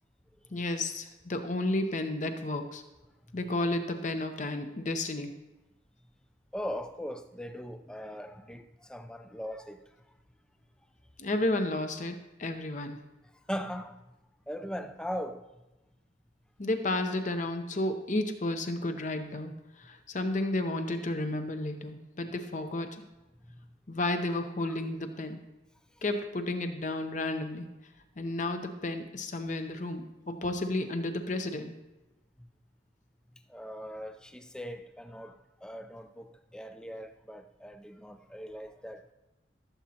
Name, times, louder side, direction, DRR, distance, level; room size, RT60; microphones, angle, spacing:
voice 1, 0.5-2.8 3.3-5.3 11.2-13.0 16.6-19.5 19.8-22.9 23.9-25.4 26.0-27.7 28.2-31.7, left 2 dB, 40° left, 0.7 m, -32 dB
voice 2, 6.5-9.9 13.5-14.0 14.5-15.5 23.5-23.6 24.7-24.8 25.9-26.0 32.4-32.5 33.5-39.1, equal, 5° left, 0.4 m, -40 dB
15.5 x 7.4 x 2.8 m
head